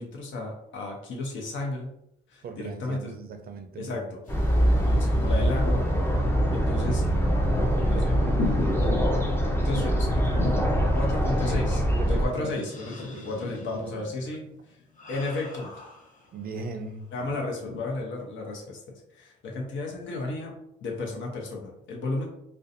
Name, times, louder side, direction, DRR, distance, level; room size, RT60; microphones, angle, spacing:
voice 1, 0.0-1.9 2.3-3.1 3.8-4.2 4.8-5.9 6.5-7.0 7.9-8.2 9.5-10.3 10.9-11.8 12.1-13.0 13.2-14.8 15.1-15.7 17.1-18.8 19.1-20.5 20.8-22.3, left 2 dB, 70° left, -1 dB, 0.8 m, -33 dB
voice 2, 2.4-4.1 4.8-5.3 7.6-8.9 11.2-12.6 13.1-13.3 13.7-13.9 14.2-14.3 16.3-17.1, right 4 dB, 50° right, 6 dB, 0.4 m, -39 dB
sound 1, 4.2-16.7 17.1-17.9, left 3 dB, 40° left, 0.8 m, -38 dB
sound 2, 4.3-12.3, equal, 10° left, 0.5 m, -23 dB
2.6 x 2.3 x 2.5 m, 0.77 s
cardioid pair, 90°, 20 cm